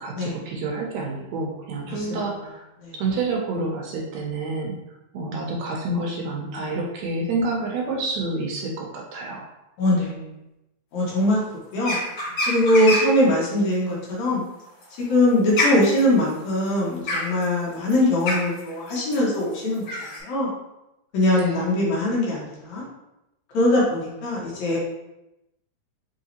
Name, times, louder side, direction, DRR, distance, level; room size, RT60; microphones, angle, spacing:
voice 1, 0.0-2.6 3.0-4.7 5.1-9.5 21.3-21.7, right 2 dB, 75° right, -1 dB, 1.8 m, -28 dB
voice 2, 1.9-2.2 2.8-3.0 9.8-10.3 10.9-11.4 11.7-12.0 12.5-14.4 15.0-19.9 20.2-20.5 21.1-22.8 23.5-24.8, left 1 dB, 75° left, -5 dB, 2.5 m, -22 dB
sound 1, 11.8-13.2 14.6-20.2, left 1 dB, 50° left, 2.0 m, -27 dB
5.6 x 3.0 x 2.8 m, 0.90 s
omnidirectional pair, 3.4 m